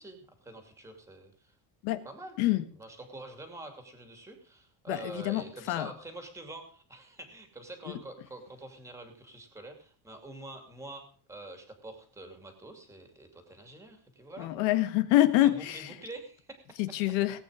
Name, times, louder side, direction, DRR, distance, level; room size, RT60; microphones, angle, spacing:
voice 1, 0.0-1.6 2.0-2.4 2.8-14.5 15.4-16.8, right 2 dB, 5° right, 6 dB, 2.5 m, -46 dB
voice 2, 4.9-5.9 14.4-15.9 16.8-17.4, left 15 dB, 75° left, 11 dB, 1.7 m, -26 dB
19.0 x 8.9 x 5.0 m, 0.42 s
cardioid pair, 180°, 45 cm